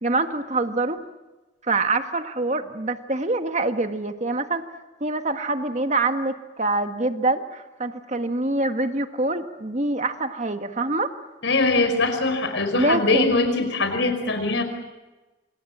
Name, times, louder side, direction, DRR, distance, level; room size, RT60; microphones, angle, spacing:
voice 1, 0.0-1.0 1.6-4.6 5.0-11.1 12.8-13.4, right 2 dB, 35° right, 7 dB, 1.5 m, -25 dB
voice 2, 11.4-14.6, left 3 dB, 65° left, 8 dB, 5.2 m, -22 dB
27.5 x 27.0 x 7.5 m, 1.1 s
head